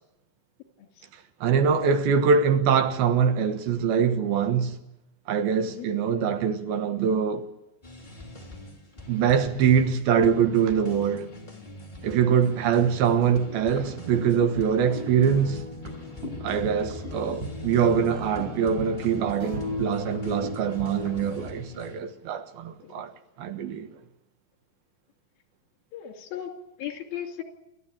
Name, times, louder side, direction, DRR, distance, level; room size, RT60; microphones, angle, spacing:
voice 1, 1.4-4.8 5.3-7.5 9.1-11.3 12.0-15.6 16.4-23.1 23.4-23.9, right 7 dB, 85° right, 3.2 m, -23 dB
sound 1, 7.8-22.0, equal, 15° left, 2.8 m, -44 dB
sound 2, 13.3-21.6, left 1 dB, 60° right, 7.7 m, -36 dB
voice 2, 25.9-26.5 26.8-27.4, left 10 dB, 75° left, 4.3 m, -37 dB
29.0 x 12.0 x 8.8 m
omnidirectional pair, 4.2 m